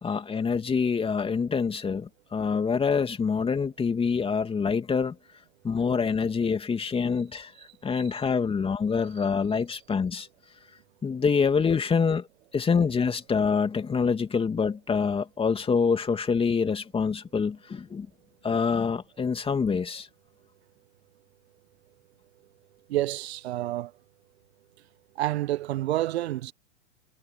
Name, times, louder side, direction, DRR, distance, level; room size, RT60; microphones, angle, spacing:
voice 1, 0.0-5.2 5.6-7.5 7.8-10.3 11.0-12.3 12.5-18.1 18.4-20.1, left 5 dB, 15° left, 2.6 m, -26 dB
voice 2, 22.9-23.9 25.2-26.5, right 15 dB, 65° right, 1.2 m, -29 dB
hypercardioid pair, 105°, 34 cm